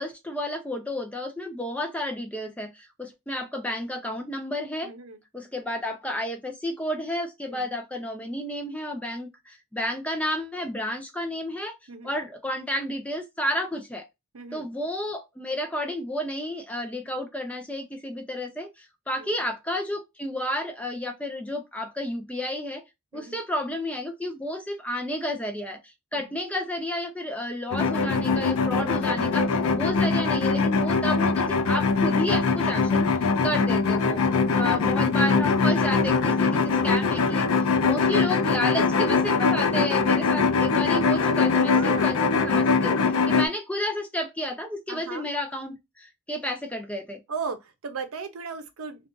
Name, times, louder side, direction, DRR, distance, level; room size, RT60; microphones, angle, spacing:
voice 1, 0.0-4.9 5.3-11.7 12.0-14.0 14.5-22.8 23.1-34.2 34.5-47.2, left 1 dB, 5° left, 0.4 m, -31 dB
voice 2, 4.8-5.2 7.5-7.7 11.9-12.1 14.3-14.7 19.2-19.4 23.1-23.4 26.1-26.4 34.4-35.0 41.7-42.2 44.9-45.3 47.3-49.1, right 4 dB, 90° right, 0.6 m, -37 dB
sound 1, 27.7-43.5, left 4 dB, 80° left, 0.5 m, -22 dB
2.5 x 2.3 x 3.7 m
head